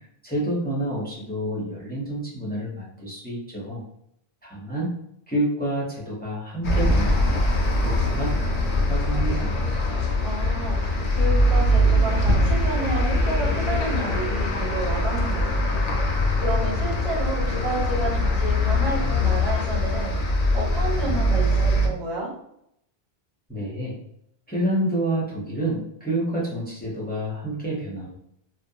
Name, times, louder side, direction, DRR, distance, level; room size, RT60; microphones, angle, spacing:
voice 1, 0.2-3.8 4.4-4.9 5.3-7.4 7.8-9.7 23.5-24.0 24.5-28.2, right 1 dB, 10° left, -6 dB, 0.5 m, -28 dB
sound 1, 6.6-21.9, left 1 dB, 60° left, 0.6 m, -22 dB
voice 2, 10.2-15.4 15.7-15.8 16.4-20.1 20.5-22.3, right 2 dB, 70° right, -6 dB, 1.4 m, -30 dB
2.4 x 2.1 x 2.6 m, 0.74 s
omnidirectional pair, 1.1 m